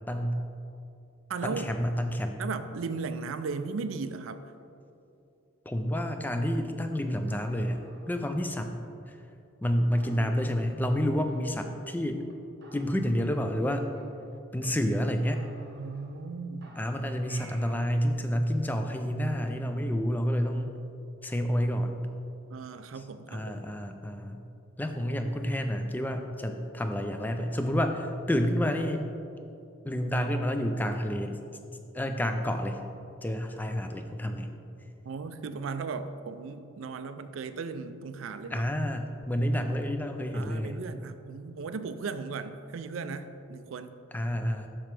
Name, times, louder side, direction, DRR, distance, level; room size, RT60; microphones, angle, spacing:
voice 1, 0.1-0.4 1.4-2.4 5.7-8.8 9.1-9.2 9.6-12.2 12.7-13.9 14.5-15.4 16.8-20.7 21.2-22.0 23.3-24.5 24.8-29.0 29.8-31.4 31.9-32.8 33.2-34.5 38.5-40.9 44.1-44.7, equal, 10° left, 6 dB, 0.3 m, -29 dB
voice 2, 1.3-1.7 2.4-4.5 15.8-16.7 22.5-23.8 35.0-38.7 40.3-43.9, right 4 dB, 80° right, 11 dB, 0.4 m, -36 dB
sound 1, 7.3-9.2 9.6-9.7 9.9-11.0 11.3-12.0 12.3-12.4 12.6-14.7 14.9-15.0 15.3-16.3 16.6-17.9, right 2 dB, 55° right, 0.9 m, -55 dB
7.4 x 6.1 x 3.3 m, 2.6 s
head